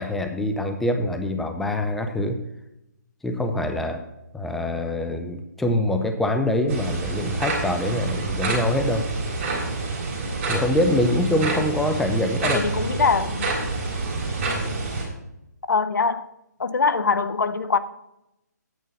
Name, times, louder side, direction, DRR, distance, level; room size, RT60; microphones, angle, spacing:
voice 1, 0.0-2.4 3.2-4.0 4.3-9.1 10.5-13.1, left 1 dB, ahead, 0.4 m, -24 dB
sound 1, 6.7-15.0, right 3 dB, 40° right, 3.3 m, -27 dB
voice 2, 12.4-13.5 15.7-16.3 16.6-17.8, left 4 dB, 80° left, 0.7 m, -22 dB
8.9 x 5.3 x 5.4 m
hypercardioid pair, 150°, 10 cm